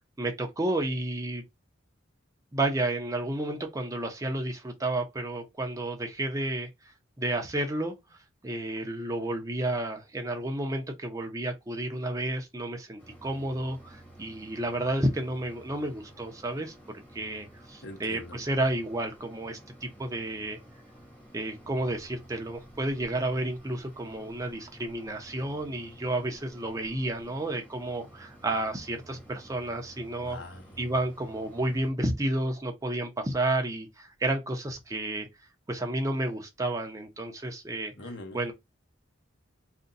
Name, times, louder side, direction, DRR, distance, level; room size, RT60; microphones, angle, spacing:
voice 1, 0.2-1.4 2.5-16.7 17.1-20.6 21.3-30.4 30.8-35.3 35.7-37.9 38.3-38.5, right 1 dB, 15° right, 0.6 m, -31 dB
Mechanisms, 13.0-31.9, right 1 dB, 10° left, 1.0 m, -52 dB
voice 2, 17.8-18.4 30.2-30.8 38.0-38.5, left 2 dB, 65° left, 0.9 m, -43 dB
2.5 x 2.2 x 3.8 m
head